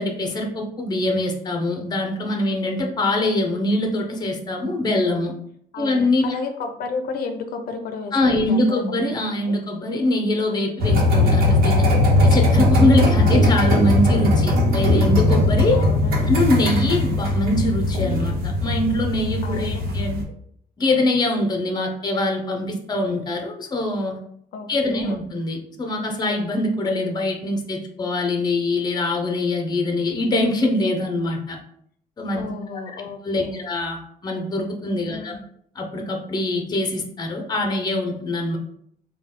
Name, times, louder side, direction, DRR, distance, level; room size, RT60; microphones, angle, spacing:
voice 1, 0.0-5.3 5.8-6.3 8.1-11.9 12.2-15.8 16.3-20.2 20.8-24.2 24.7-31.6 32.2-32.4 33.2-35.4 35.8-38.6, left 1 dB, 25° left, 3 dB, 0.7 m, -23 dB
voice 2, 5.7-9.6 13.2-13.6 15.7-16.3 19.4-19.8 24.5-25.2 32.4-33.7 35.1-35.4, left 4 dB, 80° left, 6 dB, 0.5 m, -33 dB
sound 1, 10.8-20.2, left 1 dB, 75° right, 1.0 m, -19 dB
3.9 x 2.3 x 3.6 m, 0.68 s
cardioid pair, 145°, 16 cm